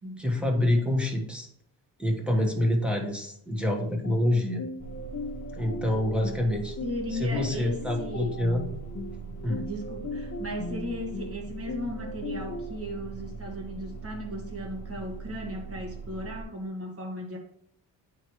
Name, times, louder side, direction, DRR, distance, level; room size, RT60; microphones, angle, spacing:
voice 1, 0.2-1.5 2.0-4.6 5.5-6.8 7.1-8.7 9.4-9.7, left 1 dB, 5° right, 0 dB, 1.4 m, -27 dB
sound 1, 4.0-12.8, left 2 dB, 35° left, 0.8 m, -38 dB
sound 2, 4.8-16.4, right 5 dB, 20° left, 1.3 m, -41 dB
voice 2, 6.8-8.4 9.6-17.4, left 1 dB, 35° right, 2 dB, 1.7 m, -36 dB
9.0 x 4.7 x 3.1 m, 0.70 s
cardioid pair, 110°, 39 cm